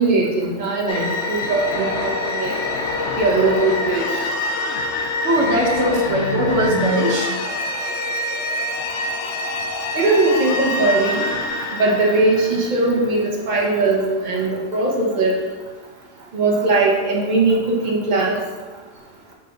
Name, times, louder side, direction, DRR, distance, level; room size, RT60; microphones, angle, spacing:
voice 1, 0.0-2.5 3.2-4.2 9.9-11.2 11.7-15.3 16.3-18.4, right 3 dB, 40° right, -2 dB, 1.3 m, -19 dB
sound 1, 0.9-13.4, left 2 dB, 75° left, 1.1 m, -25 dB
voice 2, 5.2-7.3, right 1 dB, 90° right, -1 dB, 1.3 m, -20 dB
7.4 x 4.1 x 3.8 m, 1.3 s
omnidirectional pair, 1.2 m